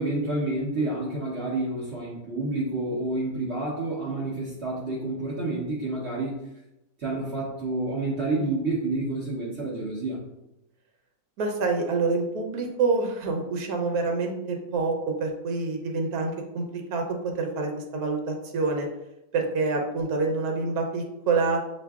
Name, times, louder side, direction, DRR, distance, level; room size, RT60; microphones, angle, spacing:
voice 1, 0.0-6.4 7.0-10.3, right 2 dB, 55° right, -5 dB, 1.0 m, -29 dB
voice 2, 11.4-16.6 16.9-18.9 19.3-21.6, right 3 dB, 85° right, 2 dB, 1.2 m, -27 dB
7.0 x 2.5 x 2.3 m, 0.90 s
omnidirectional pair, 1.5 m